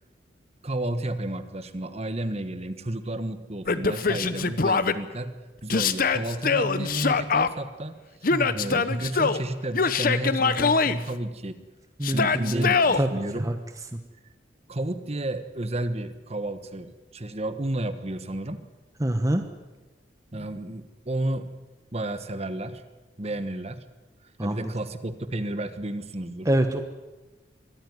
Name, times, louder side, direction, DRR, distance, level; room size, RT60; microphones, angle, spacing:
voice 1, 0.6-5.3 5.6-8.3 8.5-11.6 12.1-13.5 14.7-18.6 20.3-21.5 21.9-22.8 23.2-23.8 24.4-26.5, right 1 dB, 35° right, 11 dB, 1.3 m, -32 dB
Yell, 3.7-4.9 5.7-7.5 8.2-9.4 9.7-11.0 12.0-13.0, left 4 dB, 50° left, 0.9 m, -23 dB
voice 2, 8.3-8.8 12.0-12.7 13.0-13.1 13.3-13.5 19.0-19.4 24.4-24.7 26.4-26.8, right 1 dB, 20° right, 6 dB, 1.0 m, -25 dB
23.0 x 14.0 x 9.6 m, 1.2 s
head